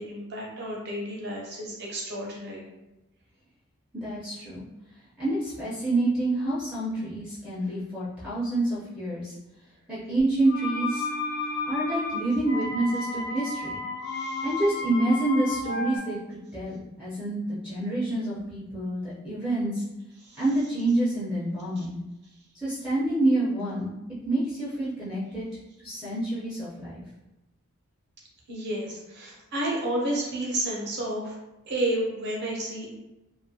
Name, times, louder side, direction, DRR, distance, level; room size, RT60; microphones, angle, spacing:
voice 1, 0.0-2.7 11.5-11.7 14.0-14.6 20.2-20.4 21.8-21.9 28.5-31.4 31.7-33.0, right 1 dB, 50° right, -3 dB, 0.6 m, -31 dB
voice 2, 3.9-4.7 5.2-9.3 9.9-11.1 11.7-13.8 14.4-19.8 20.4-22.0 22.6-23.9 24.2-25.4 25.8-27.0, right 2 dB, 5° right, -10 dB, 0.4 m, -27 dB
sound 1, 10.5-16.0, left 2 dB, 90° left, 0.6 m, -32 dB
2.4 x 2.2 x 2.6 m, 1.0 s
head